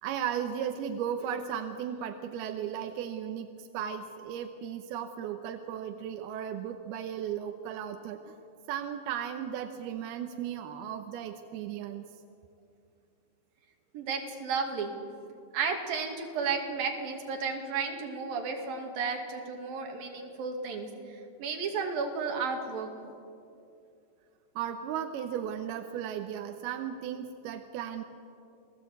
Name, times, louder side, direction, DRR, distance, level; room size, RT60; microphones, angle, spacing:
voice 1, 0.0-8.4 8.7-12.1 24.6-28.0, right 9 dB, 75° right, 6 dB, 2.5 m, -36 dB
voice 2, 13.9-14.9 15.5-22.9, right 5 dB, 55° right, 2 dB, 3.8 m, -33 dB
28.5 x 18.5 x 8.4 m, 2.6 s
omnidirectional pair, 5.3 m